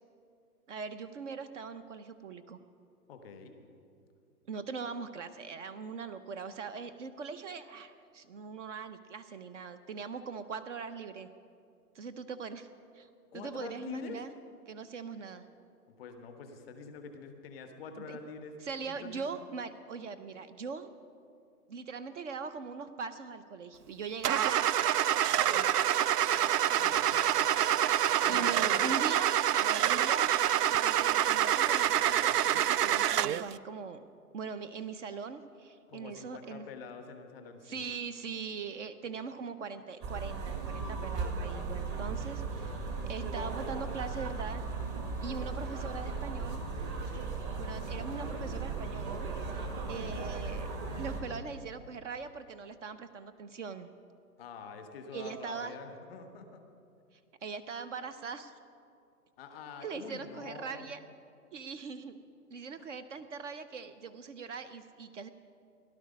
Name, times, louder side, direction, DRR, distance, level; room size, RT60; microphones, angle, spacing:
voice 1, 0.7-2.6 4.5-11.3 11.9-12.7 12.9-14.3 14.7-15.5 18.0-18.2 18.6-20.9 21.7-24.9 25.4-26.0 28.3-29.3 29.6-34.0 34.3-36.7 37.6-44.6 45.2-46.6 47.6-49.3 49.8-50.7 51.0-53.9 55.1-55.7 57.4-58.5 59.8-61.0 61.5-62.2 62.5-65.3, right 5 dB, 50° right, 12 dB, 0.7 m, -41 dB
voice 2, 3.1-3.5 13.3-14.2 15.9-18.6 18.8-19.2 26.7-27.5 28.2-29.0 35.9-37.8 50.0-50.3 54.4-56.6 59.4-60.9 62.8-62.9, left 5 dB, ahead, 5 dB, 0.4 m, -46 dB
Car / Engine starting, 24.2-33.5, right 11 dB, 85° right, 0.5 m, -27 dB
sound 1, 40.0-51.2, right 4 dB, 25° right, 1.4 m, -37 dB
17.0 x 11.5 x 5.3 m, 2.5 s
hypercardioid pair, 145°, 46 cm